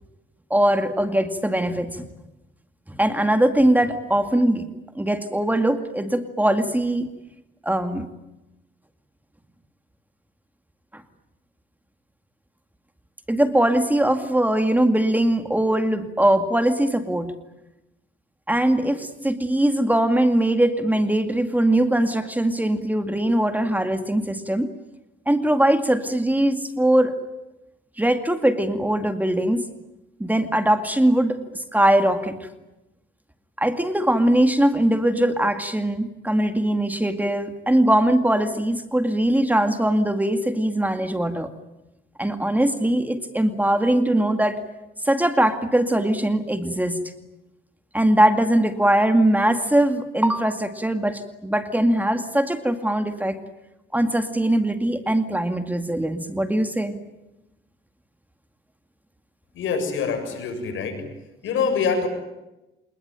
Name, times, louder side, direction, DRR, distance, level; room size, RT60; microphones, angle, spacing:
voice 1, 0.5-2.1 2.9-4.7 4.9-7.1 7.6-8.1 10.9-11.0 13.3-17.3 18.5-24.7 25.3-27.2 28.0-29.7 30.2-32.4 33.6-41.5 42.2-44.6 45.0-47.0 47.9-53.4 53.9-57.0, right 1 dB, 10° right, 8 dB, 2.2 m, -21 dB
voice 2, 59.5-61.1 61.4-62.1, left 5 dB, 80° left, 6 dB, 7.1 m, -25 dB
26.5 x 21.0 x 9.1 m, 0.97 s
cardioid pair, 90°, 20 cm